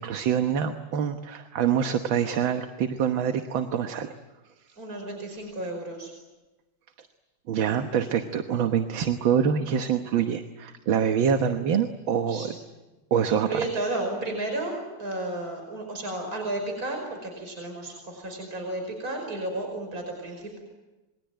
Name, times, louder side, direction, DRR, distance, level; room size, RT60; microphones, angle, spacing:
voice 1, 0.0-4.1 7.0-7.1 7.5-12.5 13.1-13.6, right 8 dB, 70° right, 7 dB, 1.9 m, -25 dB
voice 2, 4.8-6.1 12.3-12.6 13.3-20.6, right 2 dB, 45° right, 3 dB, 5.8 m, -33 dB
27.0 x 22.5 x 9.1 m, 1.1 s
omnidirectional pair, 2.2 m